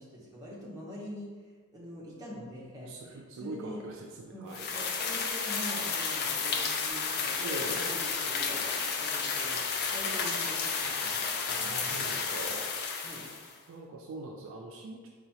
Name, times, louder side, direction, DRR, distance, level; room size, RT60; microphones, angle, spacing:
voice 1, 0.0-3.8 4.3-12.5 13.0-13.2, equal, 15° right, -6 dB, 0.9 m, -45 dB
voice 2, 2.9-4.7 7.4-8.0 11.6-12.6 13.7-15.1, right 2 dB, 60° right, 1 dB, 0.4 m, -42 dB
sound 1, 4.5-13.5, left 5 dB, 45° left, 0.4 m, -32 dB
4.9 x 2.3 x 2.8 m, 1.4 s
head